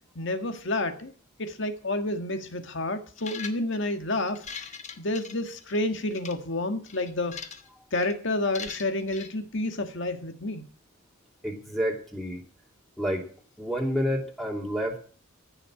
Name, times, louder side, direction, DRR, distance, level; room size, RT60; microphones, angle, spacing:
voice 1, 0.2-1.1 1.4-4.5 5.0-7.4 7.9-10.7, left 2 dB, 60° left, 1.7 m, -29 dB
sound 1, 3.2-3.8 4.3-5.8 6.1-6.3 6.9-7.7 7.9-8.1 8.5-9.3, left 6 dB, 35° left, 1.2 m, -41 dB
voice 2, 11.4-12.4 13.0-13.2 13.6-15.0, equal, ahead, 2.6 m, -29 dB
15.0 x 6.9 x 8.6 m
head